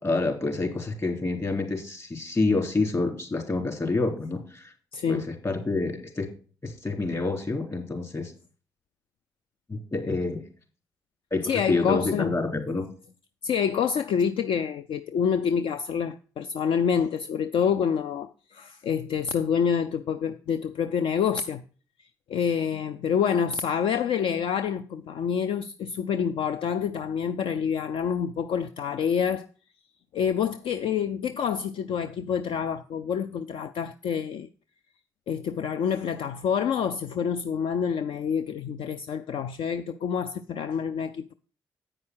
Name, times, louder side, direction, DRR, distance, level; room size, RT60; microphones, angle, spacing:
voice 1, 0.0-4.7 5.1-6.3 6.6-8.3 9.7-10.5 11.3-12.8, left 3 dB, 35° left, 3.6 m, -28 dB
voice 2, 4.9-5.3 11.4-12.4 13.4-21.6 22.3-29.5 30.1-34.5 35.3-41.3, left 7 dB, 65° left, 0.4 m, -27 dB
8.8 x 5.4 x 6.2 m
hypercardioid pair, 50°, 9 cm